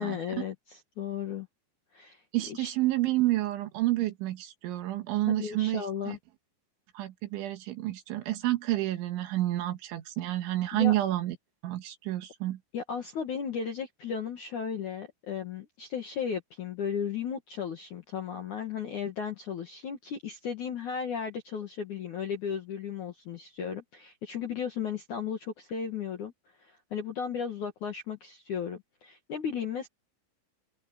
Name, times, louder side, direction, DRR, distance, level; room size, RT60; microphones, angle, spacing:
voice 1, 0.0-1.5 1.9-2.7 5.3-6.2 10.7-10.9 12.7-26.3 26.6-29.9, left 7 dB, 60° left, 2.1 m, -35 dB
voice 2, 2.3-6.2 7.0-11.4 11.6-12.6, right 16 dB, 70° right, 3.8 m, -29 dB
omnidirectional pair, 5.9 m